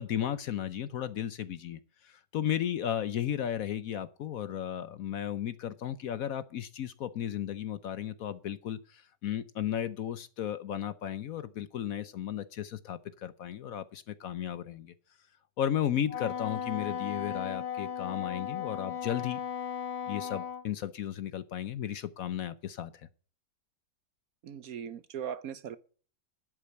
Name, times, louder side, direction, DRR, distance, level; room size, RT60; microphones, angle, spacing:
voice 1, 0.0-14.9 15.6-19.4 20.1-23.1, left 10 dB, 65° left, 1.0 m, -34 dB
Wind instrument woodwind instrument, 16.1-20.6, left 8 dB, 40° left, 1.3 m, -36 dB
voice 2, 24.4-25.8, right 8 dB, 65° right, 1.0 m, -39 dB
11.0 x 8.4 x 5.8 m
omnidirectional pair, 1.9 m